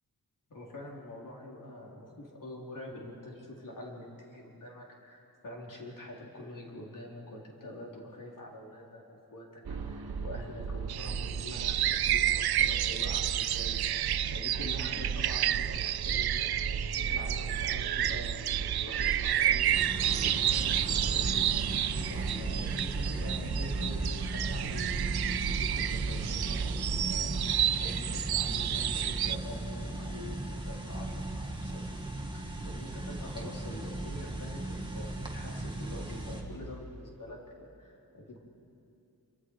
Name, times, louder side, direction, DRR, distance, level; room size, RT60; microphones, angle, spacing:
voice 1, 0.5-9.0 9.3-21.6 22.0-31.8 32.3-38.4, left 1 dB, 55° left, -2 dB, 4.2 m, -45 dB
sound 1, 9.6-27.5, right 5 dB, 70° right, 1.3 m, -37 dB
sound 2, 10.9-29.4, right 11 dB, 90° right, 0.5 m, -31 dB
sound 3, 19.7-36.4, right 1 dB, 10° right, 2.2 m, -37 dB
27.5 x 25.0 x 4.9 m, 2.7 s
wide cardioid pair, 100°, 37 cm